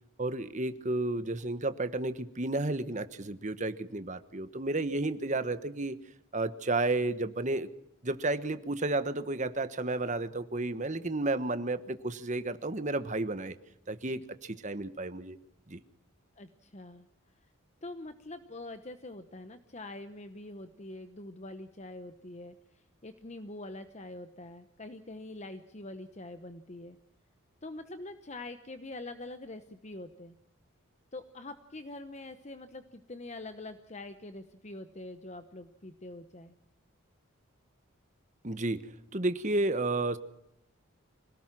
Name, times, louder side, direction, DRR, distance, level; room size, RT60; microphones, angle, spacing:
voice 1, 0.2-6.0 6.3-7.7 8.0-13.6 13.9-15.4 15.7-15.8 38.4-38.8 39.1-40.2, right 2 dB, 35° right, 12 dB, 1.2 m, -32 dB
voice 2, 16.4-17.1 17.8-27.0 27.6-30.4 31.1-36.5, left 2 dB, 35° left, 9 dB, 1.0 m, -44 dB
25.5 x 18.0 x 6.1 m, 0.76 s
head